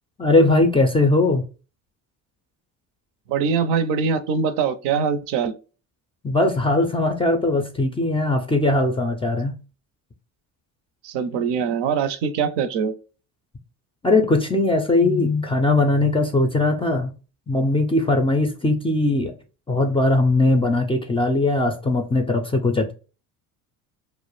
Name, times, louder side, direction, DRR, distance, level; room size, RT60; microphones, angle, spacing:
voice 1, 0.2-1.4 6.2-9.5 14.0-17.1 17.5-19.3 19.7-22.9, left 2 dB, 15° left, 0.4 m, -20 dB
voice 2, 3.3-5.5 11.0-12.9, right 6 dB, 65° right, 0.5 m, -23 dB
2.3 x 2.1 x 3.0 m
supercardioid pair, 80°, 43 cm